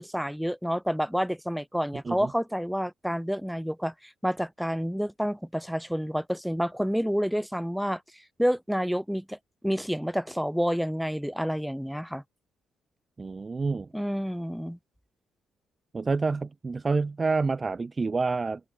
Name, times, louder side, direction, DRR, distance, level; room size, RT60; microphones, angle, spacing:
voice 1, 0.0-8.0 8.4-9.4 9.6-12.2 13.9-14.8, equal, ahead, 5.0 m, -29 dB
voice 2, 13.2-13.9 15.9-18.6, right 4 dB, 30° right, 0.8 m, -28 dB
open air
cardioid pair, 90°, 0 cm